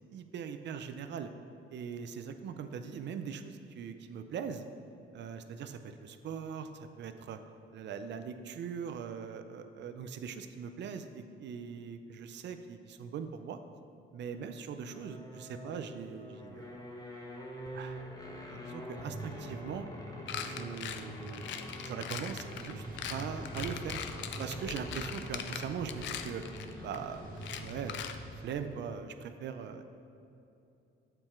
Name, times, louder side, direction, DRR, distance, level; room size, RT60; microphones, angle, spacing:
voice 1, 0.1-1.3 1.7-4.7 5.1-7.4 7.7-13.6 14.1-16.7 17.7-18.1 18.5-19.9 20.4-21.4 21.8-22.8 23.1-24.0 24.4-26.4 26.8-27.3 27.6-28.0 28.4-29.8, right 7 dB, 65° right, 9 dB, 0.5 m, -41 dB
sound 1, 14.9-28.3, equal, 20° left, 1.1 m, -44 dB
sound 2, 20.3-27.0 27.4-28.2, left 9 dB, 70° left, 0.5 m, -41 dB
sound 3, 22.1-28.4, right 1 dB, 45° right, 1.4 m, -50 dB
7.8 x 4.5 x 4.4 m, 2.8 s
cardioid pair, 90°, 20 cm